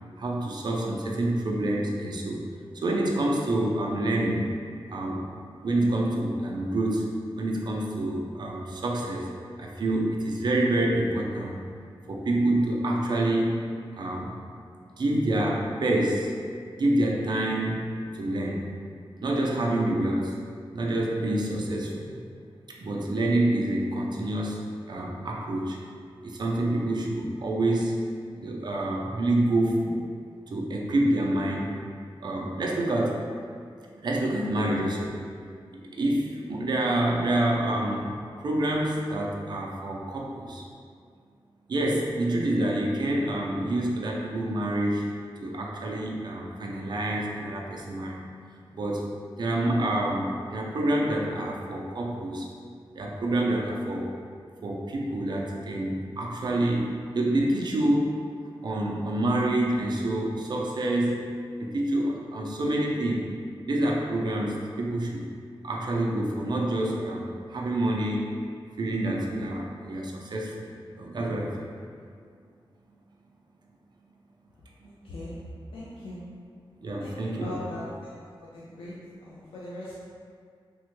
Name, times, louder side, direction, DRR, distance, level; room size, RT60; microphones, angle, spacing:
voice 1, 0.2-2.4 2.7-4.5 4.9-5.3 5.6-7.1 7.4-9.3 9.6-11.6 12.1-13.5 14.0-14.4 15.0-16.3 16.8-18.7 19.2-20.4 20.7-22.1 22.7-25.8 26.2-28.0 28.3-30.0 30.5-31.8 32.2-33.3 34.0-35.2 35.7-40.7 41.7-45.1 45.4-48.3 48.7-49.1 49.4-52.5 53.0-54.2 54.6-58.2 58.6-61.3 61.6-63.3 63.6-65.2 65.6-68.3 68.8-70.6 70.9-71.7 74.8-74.9 76.0-76.1 76.8-77.6, right 1 dB, 50° right, -1 dB, 0.4 m, -27 dB
voice 2, 75.0-75.4 75.7-76.2 77.0-78.2 78.4-79.9, left 1 dB, 75° left, -7 dB, 0.4 m, -40 dB
3.3 x 2.1 x 3.0 m, 2.2 s
wide cardioid pair, 155°, 9 cm